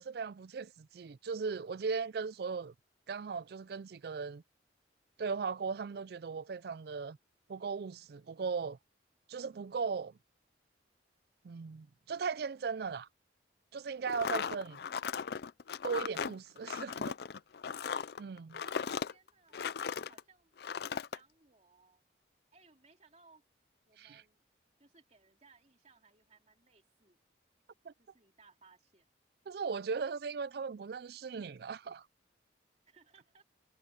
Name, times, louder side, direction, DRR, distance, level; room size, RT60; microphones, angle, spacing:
voice 1, 0.0-2.7 3.1-4.4 5.2-7.2 7.5-8.8 9.3-10.1 11.4-13.1 13.7-14.8 15.8-17.1 18.2-18.6 24.0-24.2 27.9-28.0 29.5-32.1, right 5 dB, 55° right, 0.4 m, -38 dB
sound 1, 14.0-20.2 20.6-21.2, left 6 dB, 60° left, 0.4 m, -37 dB
voice 2, 18.5-22.0 22.5-23.4 23.9-24.4 24.8-27.2 28.0-29.0 32.9-33.4, right 4 dB, 35° right, 3.0 m, -64 dB
head